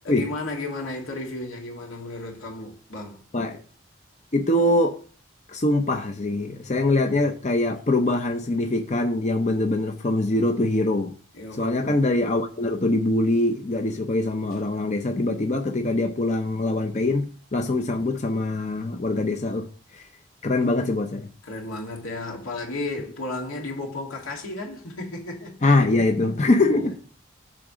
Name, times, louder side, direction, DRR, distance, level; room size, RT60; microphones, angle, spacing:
voice 1, 0.0-3.2 11.3-12.0 21.4-25.7 26.8-27.0, left 2 dB, 85° left, 2.4 m, -33 dB
voice 2, 4.3-5.0 5.5-11.1 11.5-19.7 19.9-20.0 20.4-21.3 25.6-26.9, left 2 dB, 35° left, 0.6 m, -23 dB
8.7 x 3.7 x 6.1 m
head